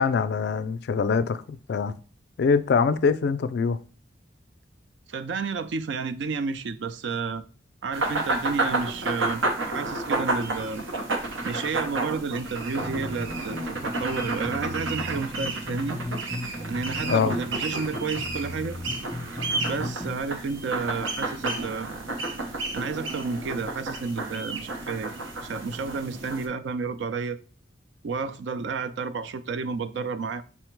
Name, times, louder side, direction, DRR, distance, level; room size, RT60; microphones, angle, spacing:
voice 1, 0.0-1.9 2.4-3.8 17.1-17.3, left 5 dB, 60° left, 0.3 m, -23 dB
voice 2, 5.1-7.4 7.8-10.8 11.4-13.6 13.8-16.0 16.6-18.8 19.6-21.9 22.7-27.4 28.0-30.4, right 4 dB, 65° right, 0.4 m, -31 dB
sound 1, 7.9-26.5, right 2 dB, 85° right, 0.9 m, -31 dB
sound 2, 12.8-20.2, left 1 dB, 5° left, 0.6 m, -36 dB
5.7 x 2.1 x 4.5 m
head